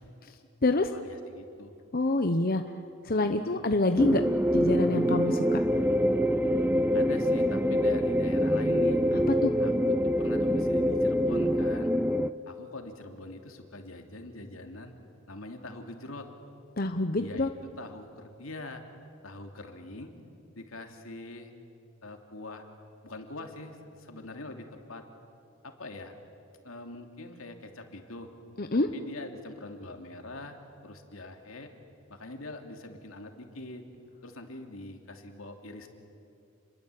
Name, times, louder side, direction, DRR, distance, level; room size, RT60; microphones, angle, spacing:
voice 1, 0.9-1.7 3.2-3.7 6.9-9.0 9.6-11.9 12.5-14.9 15.3-16.3 17.2-18.8 19.2-20.1 20.6-21.5 22.0-22.7 23.0-25.0 25.6-26.1 26.6-28.3 28.7-30.6 30.8-31.7 32.1-33.8 34.2-35.9, left 2 dB, 80° left, 4 dB, 3.0 m, -43 dB
voice 2, 1.9-2.6 3.0-4.2 4.5-5.6 9.4-9.5 16.8-17.5 28.6-28.9, left 2 dB, 45° left, 7 dB, 0.9 m, -26 dB
sound 1, 4.0-12.3, equal, 10° right, 0.5 m, -25 dB
30.0 x 22.0 x 8.6 m, 2.7 s
head